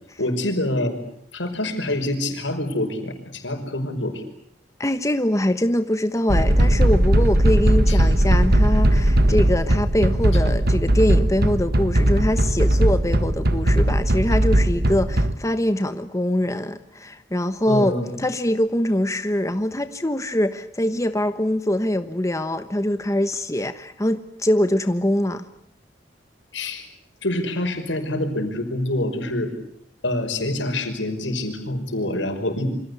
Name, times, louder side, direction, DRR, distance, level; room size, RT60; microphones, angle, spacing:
voice 1, 0.2-1.0 1.3-4.2 7.9-8.0 17.7-18.1 26.5-26.8 27.2-29.5 30.0-32.7, left 1 dB, 85° left, 6 dB, 5.6 m, -26 dB
voice 2, 4.8-25.5, left 1 dB, 15° left, 9 dB, 1.1 m, -23 dB
sound 1, 6.3-15.3, right 1 dB, 55° right, 1.6 m, -18 dB
28.0 x 25.5 x 8.3 m, 0.69 s
head